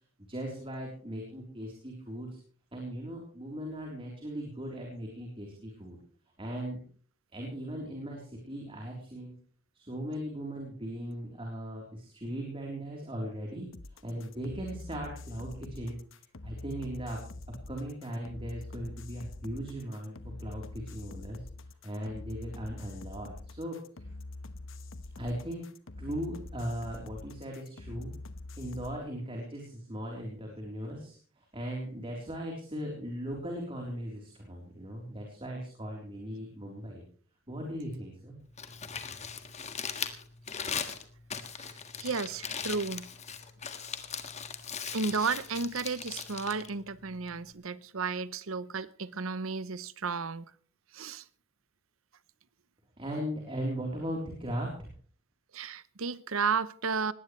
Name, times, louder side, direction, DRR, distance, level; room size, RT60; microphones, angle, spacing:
voice 1, 0.2-2.3 2.7-6.0 6.4-6.8 7.3-9.3 9.7-13.8 14.0-16.0 16.4-17.2 17.7-20.1 20.4-21.4 21.8-23.8 25.2-25.6 26.0-28.1 28.5-37.0 37.5-38.4 53.0-54.9, equal, 25° right, 3.8 m, -38 dB
sound 1, 13.7-29.0, left 2 dB, 65° left, 1.1 m, -45 dB
Crumpling crinkling, 38.4-47.5, left 7 dB, 35° left, 1.7 m, -39 dB
voice 2, 42.0-43.1 44.9-50.4 50.9-51.2 55.5-57.1, right 5 dB, 75° right, 0.9 m, -33 dB
20.0 x 17.5 x 3.2 m
head